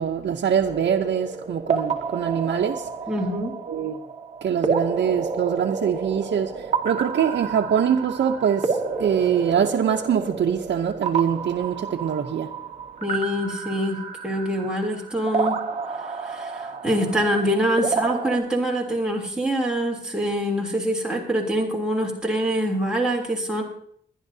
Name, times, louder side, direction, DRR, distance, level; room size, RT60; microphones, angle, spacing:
voice 1, 0.0-2.9 3.7-4.0 4.4-12.5, right 8 dB, 75° right, 0.7 m, -24 dB
sound 1, 0.6-18.4, right 5 dB, 35° right, 1.4 m, -30 dB
voice 2, 3.1-3.5 13.0-15.6 16.3-23.6, equal, 5° right, 3.1 m, -25 dB
22.5 x 11.0 x 2.8 m
wide cardioid pair, 140°, 19 cm